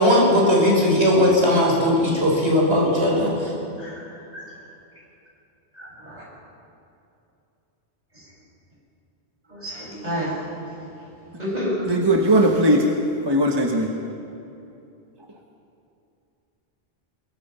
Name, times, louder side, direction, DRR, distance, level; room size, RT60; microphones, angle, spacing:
voice 1, 0.0-3.5, left 1 dB, 75° right, -3 dB, 5.5 m, -18 dB
voice 2, 3.8-4.5 5.7-6.2 8.1-8.3 9.5-11.1 11.4-11.9, equal, 40° right, -4 dB, 6.8 m, -31 dB
voice 3, 11.9-13.0 13.2-13.9, right 1 dB, 25° right, 1 dB, 1.3 m, -18 dB
23.0 x 22.0 x 5.7 m, 2.7 s
omnidirectional pair, 1.1 m